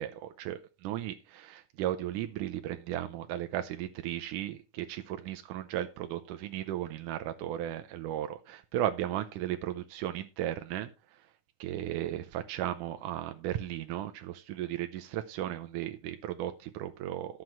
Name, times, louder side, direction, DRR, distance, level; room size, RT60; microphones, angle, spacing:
voice 1, 0.0-10.9 11.6-17.4, right 12 dB, 90° right, 8 dB, 2.3 m, -35 dB
11.5 x 7.7 x 4.4 m, 0.30 s
omnidirectional pair, 3.6 m